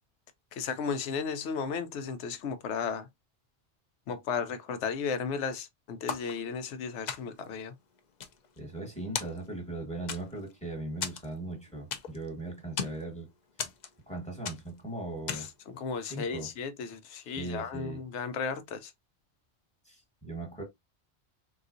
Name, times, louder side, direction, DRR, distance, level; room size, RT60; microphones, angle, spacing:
voice 1, 0.5-3.1 4.1-7.7 15.3-15.5 15.7-18.9, left 6 dB, 85° left, 0.9 m, -34 dB
sound 1, 6.1-6.7 7.1-7.5 8.0-8.9 9.1-9.7 10.1-10.5 11.0-12.3 12.6-13.0 13.6-14.1 14.4-14.8 15.3-15.6, left 7 dB, 50° left, 0.5 m, -37 dB
voice 2, 8.6-13.3 14.1-15.5 16.0-16.5 17.4-18.1 19.8-20.6, right 2 dB, 5° left, 1.2 m, -39 dB
3.8 x 2.4 x 2.5 m
omnidirectional pair, 1.1 m